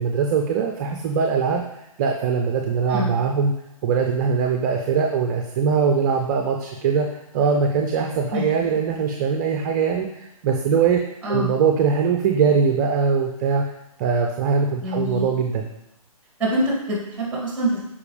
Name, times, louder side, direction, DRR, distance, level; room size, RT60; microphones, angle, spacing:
voice 1, 0.0-1.6 2.0-3.5 3.8-11.0 11.3-13.6 14.0-15.7, right 5 dB, 30° right, 2 dB, 0.6 m, -21 dB
voice 2, 14.8-15.3 16.4-17.8, equal, 5° right, -4 dB, 2.7 m, -25 dB
6.8 x 5.3 x 3.4 m, 0.86 s
figure-of-eight pair, 135°, 19 cm